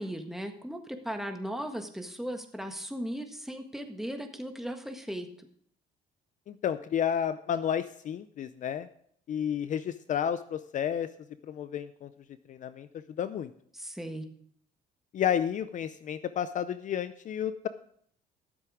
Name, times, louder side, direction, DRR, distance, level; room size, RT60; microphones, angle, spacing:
voice 1, 0.0-5.5 13.7-14.3, equal, ahead, 5 dB, 1.5 m, -37 dB
voice 2, 6.5-8.9 9.3-11.1 11.4-12.1 12.5-13.5 15.1-17.7, left 9 dB, 50° left, 13 dB, 0.5 m, -31 dB
13.5 x 7.6 x 5.0 m, 0.63 s
cardioid pair, 110°, 17 cm